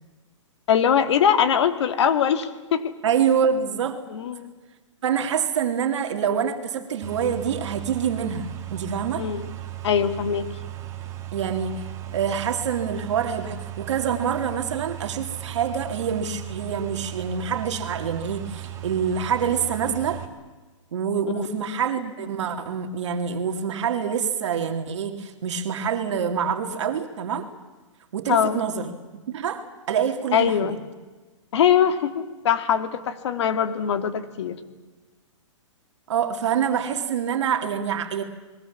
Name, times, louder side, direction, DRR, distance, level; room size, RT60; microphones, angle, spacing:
voice 1, 0.7-2.9 4.1-4.5 9.2-9.5 9.8-10.5 21.3-21.5 28.3-28.6 30.3-30.8 31.5-34.6, left 8 dB, 60° left, 9 dB, 2.2 m, -22 dB
voice 2, 3.0-4.0 5.0-9.3 11.3-11.9 12.1-20.2 20.9-27.5 28.1-28.9 29.3-30.7 36.1-38.2, right 7 dB, 65° right, 5 dB, 2.4 m, -26 dB
sound 1, 7.0-20.3, right 13 dB, 20° right, 2.4 m, -36 dB
29.0 x 21.5 x 7.2 m, 1.2 s
hypercardioid pair, 160°, 16 cm